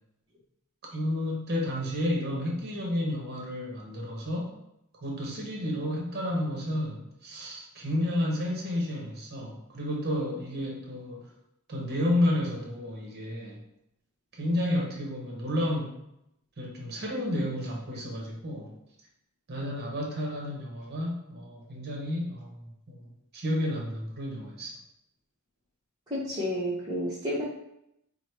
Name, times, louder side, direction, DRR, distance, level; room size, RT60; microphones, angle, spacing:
voice 1, 0.9-4.6 5.0-11.3 11.7-13.6 14.3-16.0 16.6-18.7 19.5-24.7, left 1 dB, 50° right, 0 dB, 0.8 m, -31 dB
voice 2, 26.1-27.4, equal, 20° right, -11 dB, 0.8 m, -30 dB
4.6 x 2.0 x 3.2 m, 0.80 s
head